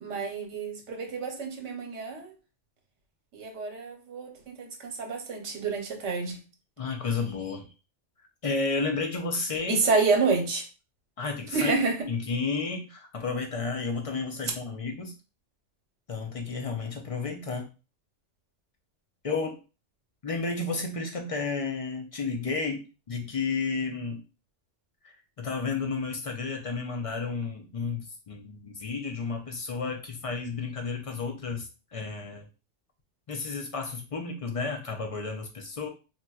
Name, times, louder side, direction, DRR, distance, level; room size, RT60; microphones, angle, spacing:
voice 1, 0.0-2.3 3.3-6.4 9.7-10.6 11.5-12.1, right 4 dB, 70° right, 1.1 m, -28 dB
voice 2, 6.8-7.7 8.4-9.8 11.2-11.7 12.1-15.1 16.1-17.7 19.2-19.6 20.2-24.2 25.4-32.4 33.3-35.9, left 4 dB, 50° left, 0.4 m, -32 dB
4.0 x 2.3 x 2.3 m
omnidirectional pair, 1.2 m